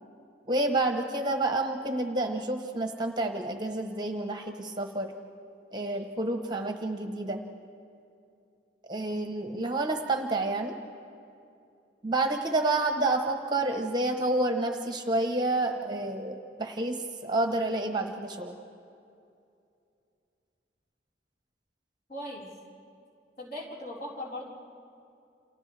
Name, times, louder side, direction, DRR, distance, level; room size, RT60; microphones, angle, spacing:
voice 1, 0.5-5.1 5.7-7.4 8.9-10.7 12.0-18.6, right 2 dB, 25° right, 4 dB, 1.0 m, -29 dB
voice 2, 22.1-22.4 23.4-24.5, left 1 dB, 50° left, -5 dB, 4.5 m, -38 dB
29.0 x 28.0 x 3.4 m, 2.6 s
head